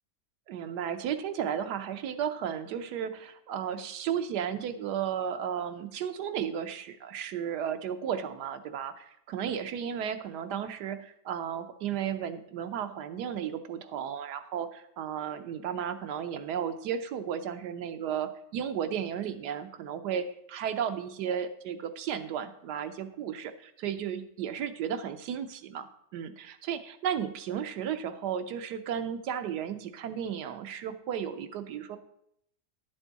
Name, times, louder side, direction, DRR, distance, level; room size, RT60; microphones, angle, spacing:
voice 1, 0.5-32.0, right 8 dB, 80° right, 9 dB, 1.3 m, -34 dB
11.0 x 7.2 x 4.0 m, 0.72 s
omnidirectional pair, 1.8 m